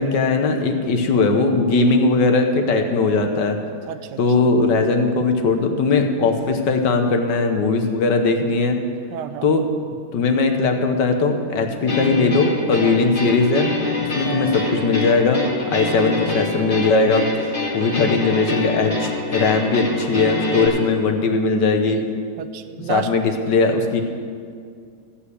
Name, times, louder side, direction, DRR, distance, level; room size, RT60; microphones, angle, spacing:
voice 1, 0.0-3.6 4.2-8.8 9.4-9.6 10.1-13.7 14.1-15.4 15.7-22.0 22.9-24.0, left 3 dB, 70° left, 5 dB, 1.6 m, -19 dB
voice 2, 3.9-4.5 9.1-9.7 12.8-13.1 14.2-14.6 22.4-23.1, right 10 dB, 70° right, 11 dB, 1.2 m, -32 dB
sound 1, 11.9-20.7, left 2 dB, 30° left, 1.9 m, -26 dB
15.0 x 5.8 x 7.9 m, 2.2 s
omnidirectional pair, 2.0 m